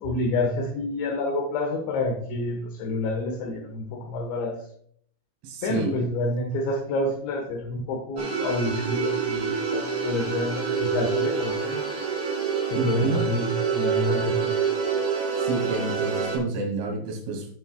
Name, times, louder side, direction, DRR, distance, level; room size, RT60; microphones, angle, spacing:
voice 1, 0.0-4.5 5.6-11.8 12.7-14.5, left 2 dB, 70° left, 0 dB, 3.4 m, -28 dB
voice 2, 5.4-5.9 12.8-13.2 15.3-17.5, right 3 dB, 75° right, 2 dB, 4.7 m, -29 dB
sound 1, 8.2-16.4, right 6 dB, 35° right, 4.6 m, -27 dB
17.0 x 6.8 x 2.3 m, 0.63 s
omnidirectional pair, 5.9 m